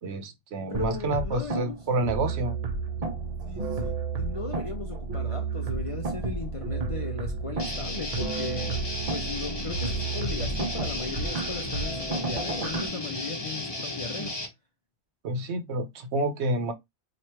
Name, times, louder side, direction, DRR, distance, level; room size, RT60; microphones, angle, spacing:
voice 1, 0.0-2.5 15.2-16.7, right 2 dB, 70° right, 1.0 m, -29 dB
voice 2, 0.7-1.8 3.5-8.8 9.1-14.4, left 4 dB, 45° left, 0.4 m, -37 dB
sound 1, 0.7-12.9, right 4 dB, 40° right, 0.6 m, -32 dB
Guitar, 7.6-14.5, left 2 dB, 25° left, 0.8 m, -34 dB
3.0 x 2.5 x 4.3 m
omnidirectional pair, 1.2 m